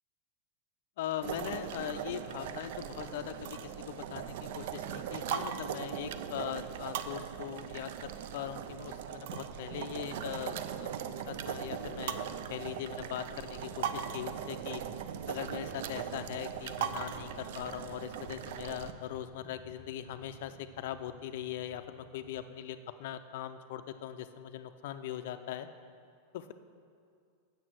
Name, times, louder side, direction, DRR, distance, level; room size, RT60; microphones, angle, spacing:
voice 1, 1.0-14.8 15.3-25.7 26.3-26.5, left 11 dB, 55° left, 9 dB, 0.5 m, -40 dB
sound 1, 1.2-18.9, right 8 dB, 55° right, 0.4 m, -39 dB
sound 2, 8.7-8.9 9.1-22.4, right 1 dB, 5° right, 1.3 m, -57 dB
7.1 x 6.2 x 7.7 m, 2.3 s
supercardioid pair, 170°, 0 cm